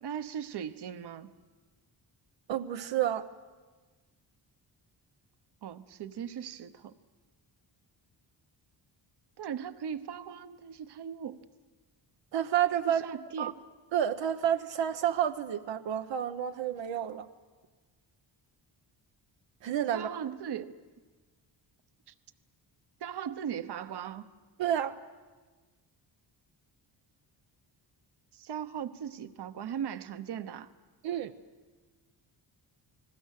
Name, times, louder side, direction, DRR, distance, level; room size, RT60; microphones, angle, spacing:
voice 1, 0.0-1.3 5.6-6.9 9.4-11.4 12.8-13.5 19.9-20.8 22.1-22.2 23.0-24.3 28.3-30.7, right 8 dB, 65° right, 10 dB, 1.1 m, -38 dB
voice 2, 2.5-3.3 12.3-13.0 13.4-13.5 13.9-17.3 19.6-20.1 24.6-24.9 31.0-31.3, right 10 dB, 85° right, 6 dB, 0.9 m, -29 dB
30.0 x 20.5 x 6.6 m, 1.3 s
wide cardioid pair, 135°, 44 cm